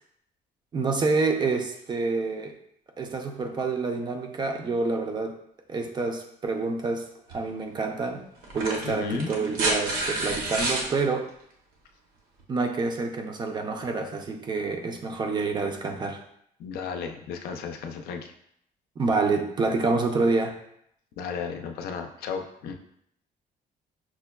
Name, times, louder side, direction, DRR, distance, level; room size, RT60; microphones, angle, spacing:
voice 1, 0.7-2.5 3.0-5.4 5.7-8.2 8.5-11.3 12.5-16.2 19.0-20.6, right 3 dB, 30° right, 4 dB, 0.4 m, -27 dB
sound 1, 7.3-7.4 8.4-10.9 12.4-12.5, right 2 dB, 70° right, 0.8 m, -29 dB
voice 2, 8.8-9.4 16.6-18.3 21.2-22.7, left 6 dB, 80° left, 4 dB, 0.5 m, -34 dB
5.9 x 2.2 x 2.2 m, 0.72 s
cardioid pair, 145°, 16 cm